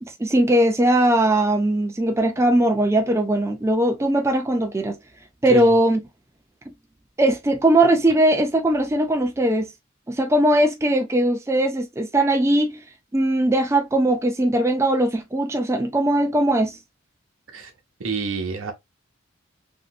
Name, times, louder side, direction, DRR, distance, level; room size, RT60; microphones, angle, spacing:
voice 1, 0.0-5.0 5.4-6.0 7.2-9.7 10.1-12.8 13.1-16.8, right 1 dB, 15° right, 0.4 m, -20 dB
voice 2, 5.5-5.8 17.5-17.7 18.0-18.7, right 4 dB, 70° right, 0.9 m, -28 dB
3.1 x 2.7 x 2.3 m
head